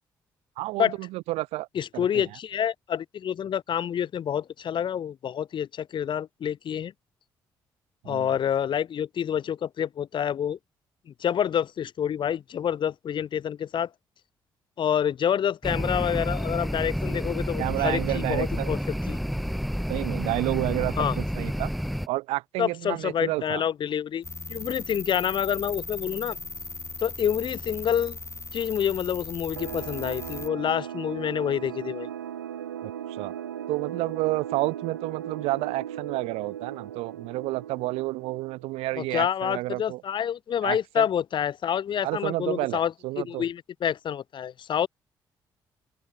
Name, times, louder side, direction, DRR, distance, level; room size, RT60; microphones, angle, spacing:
voice 1, 0.6-1.7 1.9-2.2 8.0-8.3 17.6-18.7 19.9-21.7 22.1-23.6 32.8-33.3 33.7-40.0 40.6-41.1 42.0-43.4, right 20 dB, 70° right, 0.9 m, -30 dB
voice 2, 1.7-6.9 8.1-10.6 11.2-13.9 14.8-18.8 19.1-19.2 21.0-21.2 22.6-24.2 24.5-26.4 27.0-28.2 28.5-32.1 39.0-44.9, left 9 dB, 50° left, 0.6 m, -28 dB
sound 1, 15.6-22.1, equal, ahead, 0.8 m, -29 dB
sound 2, 24.2-30.5, left 3 dB, 25° left, 3.4 m, -38 dB
sound 3, 29.6-38.9, right 10 dB, 90° right, 1.8 m, -37 dB
open air
hypercardioid pair, 40°, 11 cm